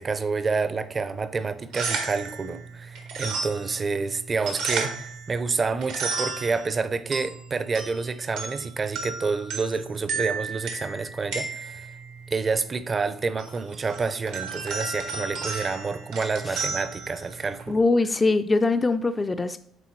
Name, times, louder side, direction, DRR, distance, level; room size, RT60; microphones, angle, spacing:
voice 1, 0.0-11.9 12.3-17.8, right 4 dB, 35° right, 0.5 m, -28 dB
sound 1, 1.5-17.8, right 4 dB, 90° right, 1.3 m, -34 dB
voice 2, 17.7-19.6, left 3 dB, 25° left, 0.4 m, -22 dB
9.0 x 3.5 x 3.1 m
supercardioid pair, 75°, 0 cm